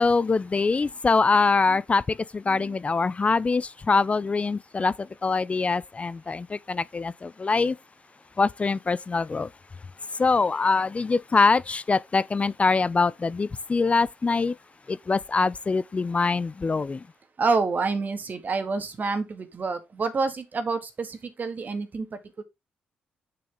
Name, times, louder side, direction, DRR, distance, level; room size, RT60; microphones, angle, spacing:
voice 1, 0.0-4.9 5.2-7.7 8.4-9.5 10.2-14.5 14.9-17.0, left 4 dB, 35° left, 0.5 m, -24 dB
voice 2, 17.4-22.1 22.4-22.5, right 4 dB, 45° right, 2.0 m, -28 dB
6.9 x 6.3 x 3.7 m
supercardioid pair, 55°, 4 cm